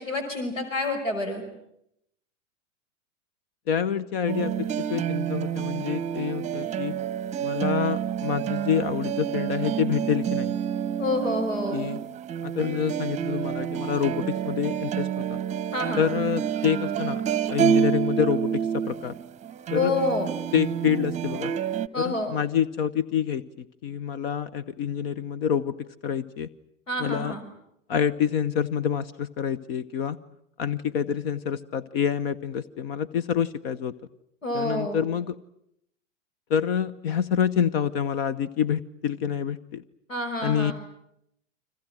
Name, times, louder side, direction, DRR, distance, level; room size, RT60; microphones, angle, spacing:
voice 1, 0.0-1.4 11.0-11.9 15.7-16.0 19.7-20.3 21.9-22.3 26.9-27.4 34.4-35.1 40.1-40.7, left 2 dB, 80° left, 6 dB, 5.6 m, -28 dB
voice 2, 3.7-6.9 7.4-10.6 11.7-12.0 12.4-15.4 16.0-17.2 17.5-19.2 19.7-19.9 20.5-21.5 22.0-25.7 26.0-26.5 27.0-27.3 27.9-30.2 30.6-33.9 34.5-35.4 36.5-39.8 40.4-40.7, left 8 dB, 50° left, 17 dB, 1.0 m, -27 dB
sound 1, 4.3-21.9, right 8 dB, 20° right, 0.9 m, -28 dB
29.5 x 25.5 x 6.3 m, 0.78 s
figure-of-eight pair, 90°, 38 cm